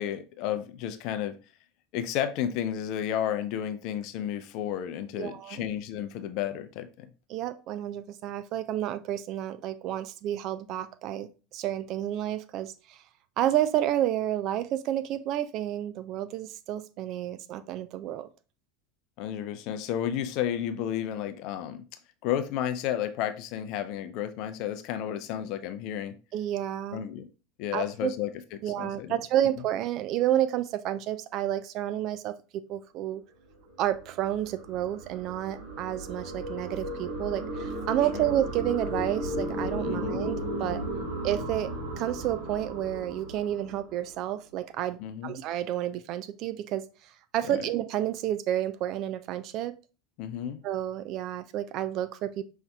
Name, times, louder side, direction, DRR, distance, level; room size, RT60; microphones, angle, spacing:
voice 1, 0.0-1.4 1.9-7.1 19.2-21.8 22.2-26.2 26.9-27.3 27.6-28.3 28.8-29.2 38.1-38.2 39.9-40.2 45.0-45.4 47.5-47.6 50.2-50.6, left 10 dB, 50° left, 0.5 m, -32 dB
voice 2, 5.2-5.7 7.3-13.0 13.4-18.3 26.3-27.1 27.7-28.1 28.6-32.3 32.7-33.2 33.8-40.8 41.2-41.7 42.0-46.8 47.3-49.7 50.6-52.4, right 12 dB, 45° right, 0.4 m, -30 dB
sound 1, 33.6-44.2, right 1 dB, 75° right, 1.4 m, -35 dB
5.4 x 3.4 x 2.2 m
figure-of-eight pair, 75°, 0 cm